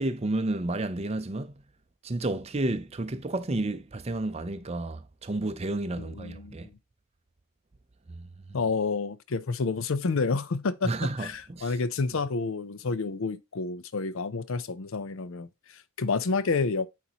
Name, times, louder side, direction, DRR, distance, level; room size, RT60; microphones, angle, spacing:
voice 1, 0.0-1.5 2.0-6.7 8.1-8.3 10.8-11.7, right 2 dB, 30° right, 0.5 m, -31 dB
voice 2, 6.0-6.8 8.5-10.9 11.2-16.9, left 4 dB, 60° left, 0.5 m, -29 dB
8.2 x 4.1 x 2.9 m
head